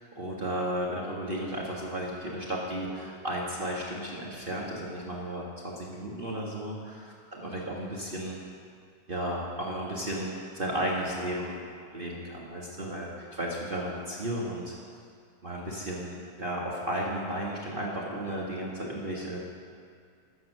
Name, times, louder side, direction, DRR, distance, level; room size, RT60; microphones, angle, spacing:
voice 1, 0.1-8.4 9.1-11.6 11.9-14.7 15.4-19.4, right 1 dB, 90° right, -4 dB, 0.4 m, -34 dB
19.0 x 7.7 x 6.5 m, 2.3 s
omnidirectional pair, 3.7 m